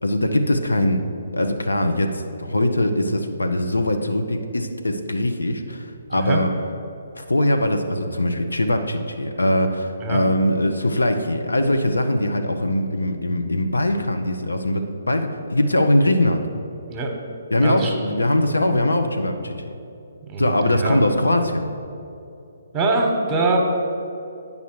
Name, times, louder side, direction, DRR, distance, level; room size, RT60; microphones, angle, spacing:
voice 1, 0.0-1.0 1.3-6.5 7.2-16.5 17.5-19.7 20.4-21.7, left 1 dB, 75° left, 5 dB, 0.7 m, -21 dB
voice 2, 17.6-17.9 20.2-21.0 22.7-23.6, right 3 dB, 20° right, 2 dB, 1.1 m, -23 dB
9.2 x 5.4 x 4.6 m, 2.7 s
figure-of-eight pair, 130°, 0 cm